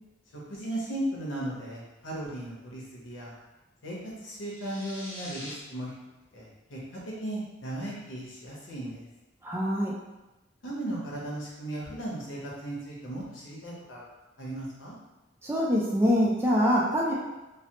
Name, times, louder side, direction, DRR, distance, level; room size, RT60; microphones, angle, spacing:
voice 1, 0.3-3.3 3.8-5.9 6.3-9.1 10.6-14.0 14.4-15.0, right 1 dB, 85° left, -4 dB, 0.9 m, -36 dB
sound 1, 4.4-5.5, equal, 40° left, 0.9 m, -43 dB
voice 2, 9.4-9.9 15.4-17.1, equal, 10° right, -5 dB, 0.3 m, -24 dB
3.1 x 2.0 x 2.8 m, 1.0 s
head